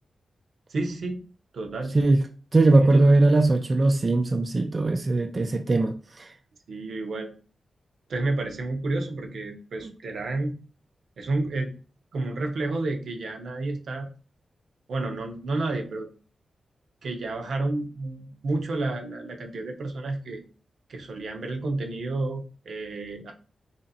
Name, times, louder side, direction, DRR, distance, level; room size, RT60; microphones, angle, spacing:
voice 1, 0.7-1.2 1.5-2.0 2.8-3.0 6.7-7.3 8.1-10.6 11.2-11.7 12.1-14.1 14.9-16.1 17.0-20.4 20.9-23.3, right 2 dB, 75° right, 4 dB, 0.7 m, -30 dB
voice 2, 2.5-6.3, right 2 dB, 35° right, 5 dB, 0.4 m, -20 dB
3.1 x 2.8 x 3.9 m, 0.38 s
cardioid pair, 90°, 0 cm